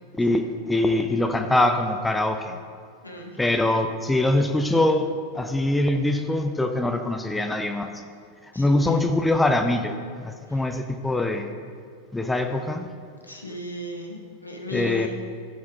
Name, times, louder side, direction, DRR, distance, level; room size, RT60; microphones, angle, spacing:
voice 1, 0.1-2.6 3.4-7.9 8.6-11.5 12.1-12.9 14.7-15.1, left 1 dB, 5° left, 6 dB, 0.5 m, -23 dB
voice 2, 8.5-9.3 10.5-10.8 13.2-15.1, left 1 dB, 85° left, 1 dB, 1.1 m, -36 dB
14.0 x 4.8 x 3.5 m, 2.2 s
figure-of-eight pair, 90°, 0 cm